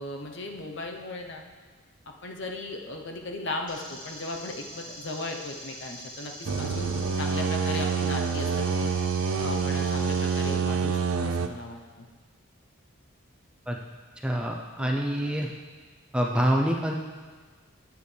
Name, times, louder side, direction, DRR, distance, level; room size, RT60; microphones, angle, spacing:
voice 1, 0.0-1.4 2.1-9.0 9.4-12.1 14.8-15.0, left 2 dB, 55° left, 2 dB, 0.8 m, -37 dB
sound 1, 3.7-10.5, equal, 90° left, 2.4 m, -44 dB
sound 2, 6.4-11.5, right 5 dB, 90° right, 0.5 m, -27 dB
voice 2, 14.2-15.5 16.1-16.9, equal, 5° right, 0 dB, 0.5 m, -26 dB
9.4 x 8.0 x 3.3 m, 1.4 s
head